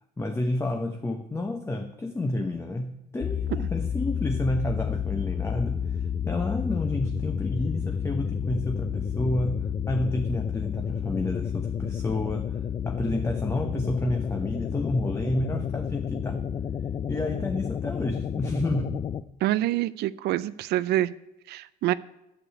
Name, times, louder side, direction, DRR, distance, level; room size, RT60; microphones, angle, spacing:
voice 1, 0.2-9.6 9.9-12.6 12.8-16.4 17.1-19.0, left 1 dB, 15° left, 5 dB, 0.9 m, -30 dB
sound 1, 3.2-19.2, left 8 dB, 30° left, 0.4 m, -30 dB
voice 2, 19.4-21.1 21.5-21.9, right 14 dB, 75° right, 16 dB, 0.4 m, -26 dB
8.6 x 6.8 x 8.3 m, 0.88 s
cardioid pair, 110°, 17 cm